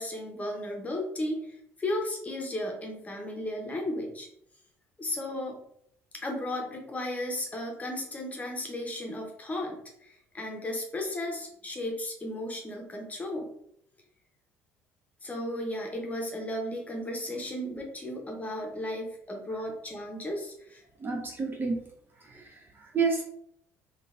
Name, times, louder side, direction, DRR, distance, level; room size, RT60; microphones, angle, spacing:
voice 1, 0.0-4.3 5.0-5.6 6.1-13.5 15.2-20.8, left 1 dB, 20° left, 1 dB, 0.9 m, -35 dB
voice 2, 21.0-21.9 22.1-23.2, right 4 dB, 30° right, 1 dB, 0.6 m, -31 dB
3.8 x 2.5 x 2.5 m, 0.69 s
figure-of-eight pair, 55°, 7 cm